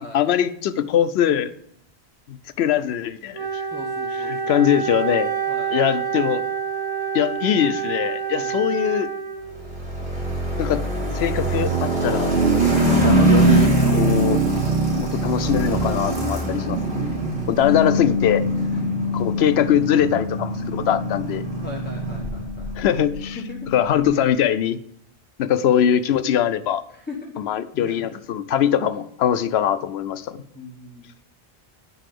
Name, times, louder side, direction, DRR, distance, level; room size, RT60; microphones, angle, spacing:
voice 1, 0.0-1.5 2.3-3.6 4.1-5.3 5.7-6.4 7.1-9.1 10.6-10.8 11.1-12.3 12.9-14.4 15.0-17.1 17.5-18.4 19.1-21.4 22.8-23.4 23.7-24.8 25.4-26.8 27.4-30.4, left 10 dB, 85° left, 13 dB, 0.8 m, -22 dB
Wind instrument woodwind instrument, 3.3-9.7, right 7 dB, 25° right, 1.1 m, -27 dB
voice 2, 3.7-4.5 5.5-5.8 8.3-8.6 18.7-19.0 21.6-22.7 23.4-23.7 26.9-27.3 27.7-28.2 30.5-31.1, left 2 dB, 10° left, -1 dB, 0.9 m, -39 dB
sound 1, 9.6-22.8, right 2 dB, 75° right, 3.2 m, -22 dB
Bass guitar, 17.6-23.9, left 5 dB, 55° left, 1.4 m, -28 dB
10.0 x 4.0 x 6.6 m, 0.67 s
omnidirectional pair, 1.0 m